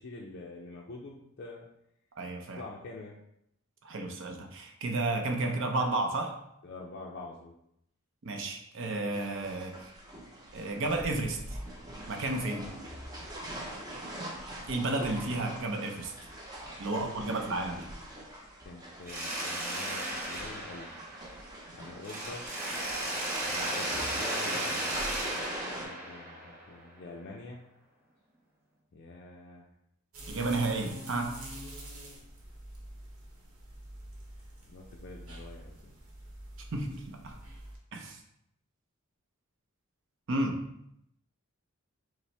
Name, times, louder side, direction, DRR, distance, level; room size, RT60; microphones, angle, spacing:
voice 1, 0.0-1.7 2.5-3.2 6.6-7.5 16.8-17.1 18.7-20.9 21.7-22.4 23.4-25.3 25.8-27.6 28.9-29.6 34.7-36.0, left 3 dB, 50° left, -2 dB, 0.4 m, -45 dB
voice 2, 2.2-2.6 3.8-6.3 8.2-9.9 10.5-11.6 12.1-12.7 14.7-16.1 16.8-17.9 30.3-31.4 36.7-37.4 37.9-38.2 40.3-40.6, right 2 dB, 60° right, 3 dB, 0.6 m, -32 dB
sound 1, 9.1-25.9, right 1 dB, 20° right, 0.6 m, -43 dB
Mechanisms, 19.1-21.7 22.0-26.9, right 1 dB, 40° right, 1.1 m, -35 dB
sound 2, 30.1-37.8, right 1 dB, 75° right, 0.9 m, -46 dB
5.3 x 2.0 x 3.2 m, 0.77 s
head